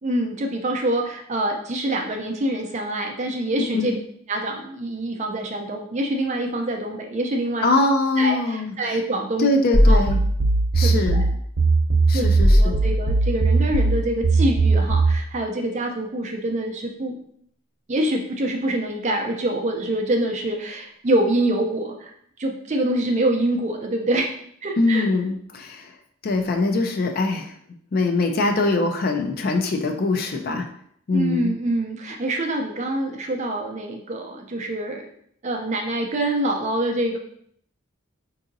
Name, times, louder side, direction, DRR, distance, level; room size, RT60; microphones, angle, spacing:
voice 1, 0.0-4.0 4.3-7.7 8.2-9.5 9.9-10.0 10.8-11.2 12.1-12.3 12.6-17.2 17.9-22.1 22.4-24.3 24.6-25.1 31.1-35.1 35.4-37.2, right 1 dB, 35° right, 2 dB, 0.5 m, -25 dB
voice 2, 7.6-9.0 9.4-10.2 10.7-11.2 12.1-12.7 24.8-25.9 26.2-27.5 27.9-30.7 31.1-31.6, left 3 dB, 45° left, 4 dB, 0.4 m, -22 dB
sound 1, 9.7-15.2, right 2 dB, 60° right, 0.8 m, -18 dB
4.7 x 2.7 x 2.6 m, 0.67 s
head